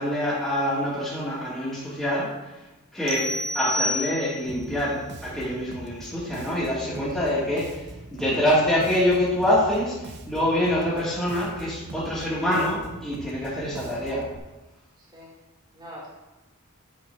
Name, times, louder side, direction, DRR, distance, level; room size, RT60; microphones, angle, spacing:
voice 1, 0.0-2.5 2.9-3.3 3.5-7.8 8.1-14.2, left 1 dB, ahead, -11 dB, 2.3 m, -25 dB
sound 1, 3.1-4.6, left 1 dB, 70° right, 1.9 m, -29 dB
Bass guitar, 4.5-14.4, right 2 dB, 55° right, 0.7 m, -42 dB
voice 2, 6.9-7.3 15.0-15.3 15.7-16.1, equal, 20° right, -7 dB, 2.9 m, -43 dB
8.4 x 4.7 x 5.8 m, 1.1 s
head